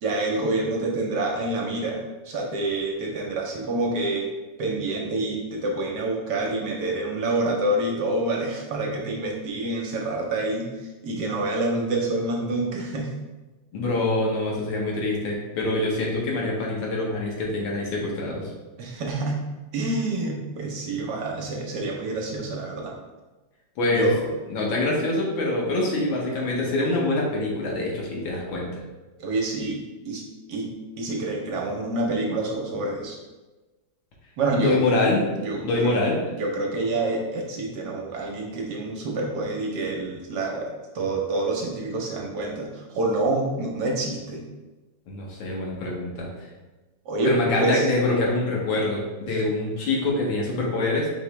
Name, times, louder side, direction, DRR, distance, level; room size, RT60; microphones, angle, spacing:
voice 1, 0.0-4.3 4.6-10.7 11.0-13.1 18.8-19.4 19.7-22.9 23.9-24.2 29.2-30.2 30.5-30.7 31.0-33.2 34.4-34.8 35.3-35.9 36.4-44.4 47.1-47.9 49.3-49.4, right 2 dB, 65° right, -1 dB, 1.2 m, -27 dB
voice 2, 13.7-18.5 23.8-24.1 24.5-28.8 34.5-35.2 35.6-36.2 45.1-46.3 47.2-51.1, left 2 dB, 90° left, -3 dB, 1.8 m, -25 dB
5.0 x 2.9 x 3.2 m, 1.2 s
omnidirectional pair, 2.0 m